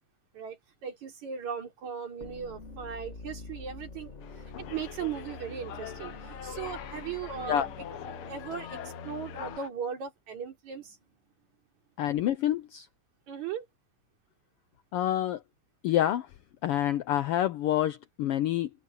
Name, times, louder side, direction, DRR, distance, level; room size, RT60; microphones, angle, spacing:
voice 1, 0.3-11.0 13.3-13.7, right 7 dB, 70° right, 4.8 m, -38 dB
sound 1, 2.2-9.6, left 3 dB, 30° left, 1.6 m, -45 dB
sound 2, 4.2-9.7, left 9 dB, 60° left, 1.6 m, -44 dB
voice 2, 12.0-12.9 14.9-15.4 15.8-16.3 16.6-18.7, left 12 dB, 90° left, 1.2 m, -27 dB
omnidirectional pair, 3.4 m